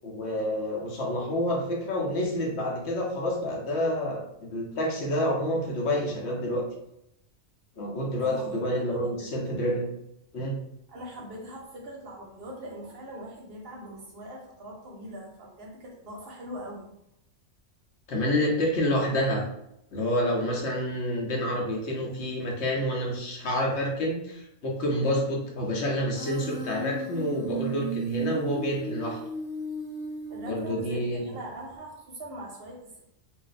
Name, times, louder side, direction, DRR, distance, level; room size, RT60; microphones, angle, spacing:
voice 1, 0.0-6.6 7.8-9.9 10.3-10.6 18.1-19.4 19.9-29.2 30.5-31.2, left 1 dB, 65° left, -1 dB, 1.0 m, -28 dB
voice 2, 8.0-9.4 10.9-16.9 30.3-33.1, equal, 60° right, -1 dB, 0.8 m, -42 dB
Human voice, 26.1-31.1, right 4 dB, 20° right, 0.9 m, -35 dB
2.6 x 2.1 x 3.9 m, 0.82 s
omnidirectional pair, 1.3 m